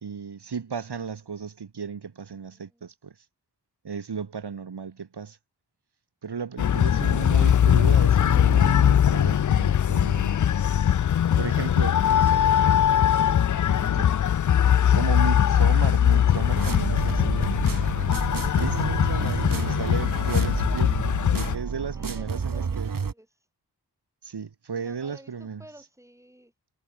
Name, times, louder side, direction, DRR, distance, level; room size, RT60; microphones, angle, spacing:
voice 1, 0.0-3.1 3.8-5.4 6.2-10.4 11.4-11.9 13.8-14.2 14.9-17.6 18.5-21.0 21.3-22.9 24.2-25.6, right 6 dB, 80° right, 1.9 m, -34 dB
voice 2, 2.3-2.9 11.3-12.6 21.9-23.5 24.8-26.5, equal, 5° right, 7.7 m, -53 dB
sound 1, 6.6-21.6, left 9 dB, 50° left, 0.4 m, -21 dB
sound 2, 16.5-23.1, right 5 dB, 55° right, 1.3 m, -30 dB
wide cardioid pair, 65°, 39 cm